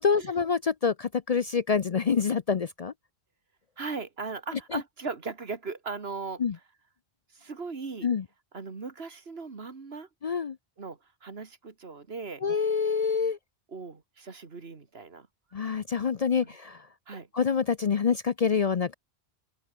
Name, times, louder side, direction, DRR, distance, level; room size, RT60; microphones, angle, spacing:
voice 1, 0.0-2.9 4.7-4.8 6.4-6.6 8.0-8.2 10.2-10.6 12.4-13.4 15.5-16.9 17.3-18.9, left 6 dB, 45° left, 0.6 m, -26 dB
voice 2, 3.8-6.4 7.3-8.1 8.5-10.1 10.8-12.4 13.7-15.3 16.4-16.6 17.1-17.3, right 4 dB, 70° right, 2.2 m, -38 dB
open air
omnidirectional pair, 1.1 m